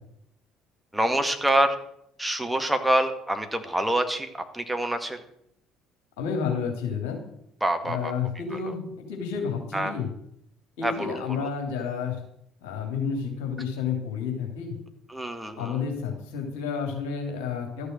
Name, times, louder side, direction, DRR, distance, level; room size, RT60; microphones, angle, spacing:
voice 1, 0.9-1.8 2.2-4.3 4.5-5.2 7.6-8.1 8.5-8.7 9.7-9.9 10.8-11.5 15.1-15.8, right 1 dB, 5° right, 6 dB, 1.9 m, -26 dB
voice 2, 6.2-7.2 7.8-8.8 9.1-10.1 10.8-12.2 12.6-14.8 15.6-17.9, left 6 dB, 65° left, 2 dB, 3.1 m, -30 dB
13.0 x 6.7 x 7.8 m, 0.73 s
figure-of-eight pair, 50°, 0 cm